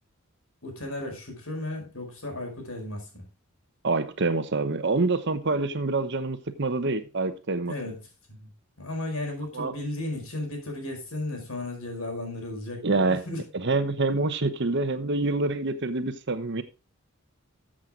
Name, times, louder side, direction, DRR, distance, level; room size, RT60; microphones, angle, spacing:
voice 1, 0.6-3.3 7.6-8.0 8.3-8.5 8.8-13.4, left 1 dB, 70° left, 5.2 m, -35 dB
voice 2, 3.8-7.7 9.5-9.7 12.8-13.2 13.5-16.6, right 3 dB, 55° right, 1.0 m, -26 dB
14.0 x 7.6 x 3.8 m
head